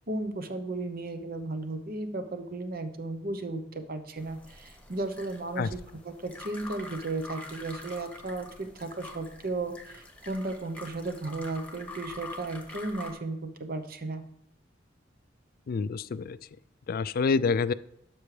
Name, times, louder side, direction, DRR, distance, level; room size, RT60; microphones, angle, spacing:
voice 1, 0.1-14.2, right 2 dB, 50° right, 8 dB, 0.9 m, -35 dB
sound 1, 4.2-13.1, left 2 dB, 5° left, 1.2 m, -45 dB
voice 2, 15.7-16.4 16.9-17.7, left 4 dB, 50° left, 17 dB, 0.3 m, -27 dB
12.0 x 6.2 x 3.3 m, 0.77 s
head